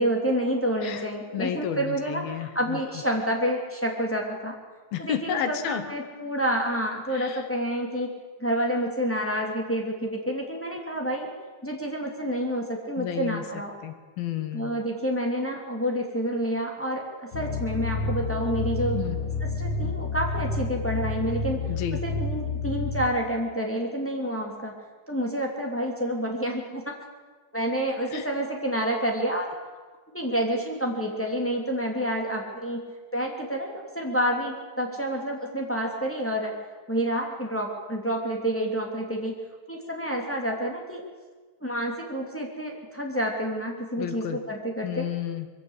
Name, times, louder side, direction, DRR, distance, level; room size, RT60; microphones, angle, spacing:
voice 1, 0.0-4.5 5.0-8.1 8.4-11.3 11.6-13.7 14.5-19.0 19.6-21.6 22.0-24.7 25.1-26.9 27.5-29.6 30.1-32.9 33.1-36.5 36.9-39.4 39.7-41.0 41.6-45.1, equal, 5° left, 0 dB, 1.6 m, -28 dB
voice 2, 1.3-2.8 4.9-5.9 7.1-7.5 13.0-13.4 13.8-14.7 18.9-19.2 21.6-22.1 28.1-28.3 44.0-44.4 44.8-45.5, left 10 dB, 65° left, 9 dB, 2.7 m, -32 dB
sound 1, 17.3-23.1, left 3 dB, 85° left, 1.2 m, -29 dB
22.5 x 16.5 x 8.2 m, 1.4 s
omnidirectional pair, 5.1 m